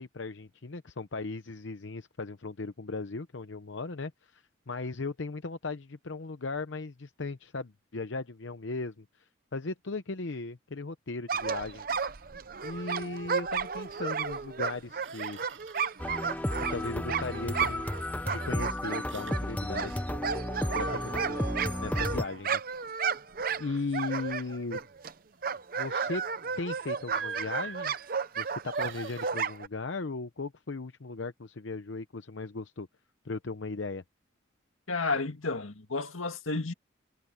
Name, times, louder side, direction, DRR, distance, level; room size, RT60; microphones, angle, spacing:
voice 1, 0.0-11.9 12.6-15.4 16.6-17.9 18.3-20.0 20.7-21.5 21.8-22.6 23.6-24.8 25.8-26.2 26.6-27.9 28.4-32.9 33.2-34.0, left 3 dB, 70° left, 0.8 m, -37 dB
sound 1, 11.3-18.0 18.3-25.1 25.4-29.7, right 6 dB, 45° right, 0.7 m, -33 dB
Squeak, 14.2-14.4 14.7-16.2 16.5-17.0 17.5-20.3 20.6-22.4 22.8-23.0 23.5-24.1 26.2-26.4 27.1-29.3, right 6 dB, 70° right, 6.2 m, -47 dB
sound 2, 16.0-22.3, left 1 dB, 10° left, 0.7 m, -33 dB
voice 2, 34.9-36.7, left 3 dB, 90° left, 2.0 m, -31 dB
head